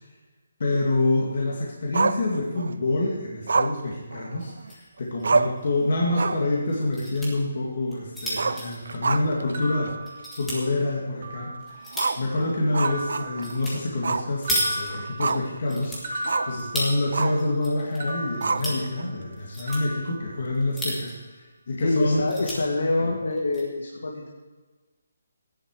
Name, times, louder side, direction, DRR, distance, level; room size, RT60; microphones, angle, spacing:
voice 1, 0.6-22.2 23.0-23.1, left 2 dB, 40° left, -3 dB, 2.2 m, -27 dB
Growling, 1.9-2.7 3.5-4.7 5.0-5.1 5.2-5.7 6.0-6.5 6.8-6.9 8.3-9.5 9.9-10.0 10.5-10.6 11.9-13.6 14.0-14.3 14.6-15.6 16.3-16.6 17.1-17.5 18.4-19.0, right 4 dB, 60° right, 0.6 m, -27 dB
sound 1, 4.4-4.9 5.2-5.3 5.6-5.7 6.7-7.3 7.8-9.6 10.1-10.6 11.2-12.3 13.4-13.8 14.0-15.3 15.7-17.0 17.4-18.0 18.3-18.8 19.4-19.8 20.5-21.3 21.7-21.8 22.1-22.6 23.3-23.6, equal, 5° left, 1.7 m, -33 dB
sound 2, 9.5-10.8 11.2-12.0 12.8-14.1 14.4-17.4 18.0-19.4 19.7-21.0, right 1 dB, 40° right, 2.1 m, -37 dB
voice 2, 21.8-24.3, left 2 dB, 75° left, 0 dB, 2.0 m, -26 dB
16.0 x 10.5 x 4.9 m, 1.3 s
hypercardioid pair, 180°, 0 cm